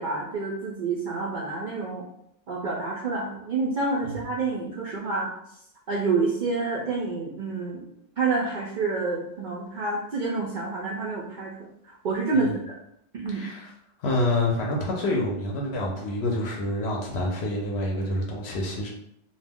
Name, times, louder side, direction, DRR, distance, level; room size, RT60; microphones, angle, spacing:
voice 1, 0.0-2.0 2.5-5.3 5.9-7.9 8.2-11.5 11.8-12.8 13.1-13.4, right 3 dB, 65° right, -5 dB, 0.5 m, -28 dB
voice 2, 13.3-13.7 14.0-18.9, left 1 dB, 65° left, -1 dB, 0.8 m, -27 dB
2.3 x 2.1 x 3.4 m, 0.75 s
omnidirectional pair, 1.3 m